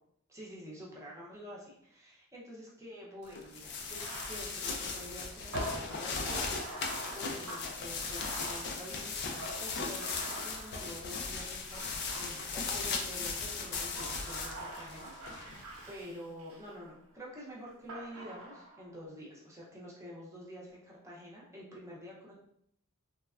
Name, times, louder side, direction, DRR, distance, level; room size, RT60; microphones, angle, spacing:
voice 1, 0.3-22.3, equal, 15° right, -5 dB, 0.6 m, -48 dB
sound 1, 3.3-15.9, left 4 dB, 50° left, 0.4 m, -38 dB
Bathtub (filling or washing), 3.8-11.2 11.7-13.0 13.6-16.7 17.9-18.9, right 2 dB, 90° right, 0.7 m, -45 dB
3.3 x 2.1 x 2.4 m, 0.72 s
head